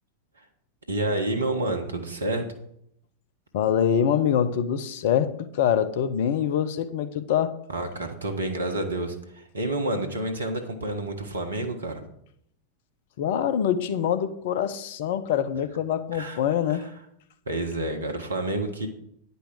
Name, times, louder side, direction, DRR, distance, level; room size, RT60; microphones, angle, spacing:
voice 1, 0.9-2.5 7.7-12.0 16.1-16.4 16.7-16.8 17.5-18.9, right 2 dB, 75° right, 1.4 m, -29 dB
voice 2, 3.5-7.5 13.2-16.9, left 9 dB, 55° left, 0.7 m, -24 dB
10.0 x 5.4 x 6.2 m
figure-of-eight pair, 90°, 0 cm